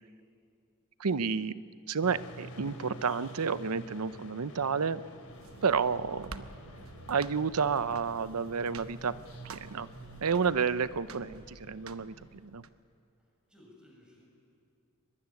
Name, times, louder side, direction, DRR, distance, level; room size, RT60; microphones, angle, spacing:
voice 1, 1.0-1.5 1.9-5.0 5.6-6.5 7.1-9.1 9.5-9.9 10.2-12.1 12.4-12.6, right 5 dB, 85° right, 15 dB, 0.7 m, -30 dB
sound 1, 2.0-12.4, right 1 dB, 85° left, 3.3 m, -50 dB
sound 2, 5.2-12.7, right 4 dB, 70° right, 1.0 m, -49 dB
voice 2, 13.2-14.3, left 1 dB, 5° right, -1 dB, 6.2 m, -58 dB
23.0 x 21.0 x 9.8 m, 2.4 s
head